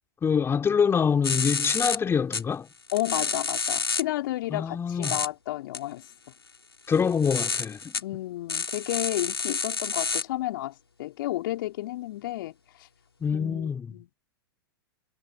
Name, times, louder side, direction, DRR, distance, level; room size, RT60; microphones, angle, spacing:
voice 1, 0.2-2.7 4.5-5.2 6.9-7.9 13.2-13.9, left 6 dB, 20° left, 3.6 m, -25 dB
sound 1, 1.2-2.0 2.3-2.4 2.9-4.0 5.0-5.3 5.7-5.8 6.9-8.0 8.5-10.2, left 5 dB, 85° left, 5.5 m, -29 dB
voice 2, 2.9-6.1 8.0-12.9 13.3-14.1, left 16 dB, 60° left, 4.0 m, -32 dB
hypercardioid pair, 100°, 13 cm